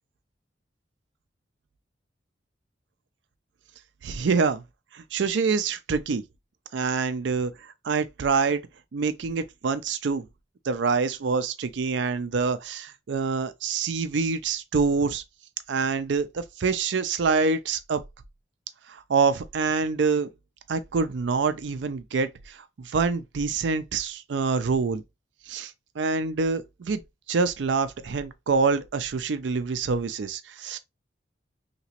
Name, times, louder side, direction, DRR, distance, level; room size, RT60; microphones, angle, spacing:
voice 1, 4.0-4.6 4.9-6.2 6.7-7.5 7.8-8.6 8.9-10.3 10.6-15.2 15.7-18.0 18.9-20.3 20.7-25.0 25.5-27.0 27.3-30.8, right 4 dB, 75° right, 0.4 m, -26 dB
2.9 x 2.9 x 2.8 m
head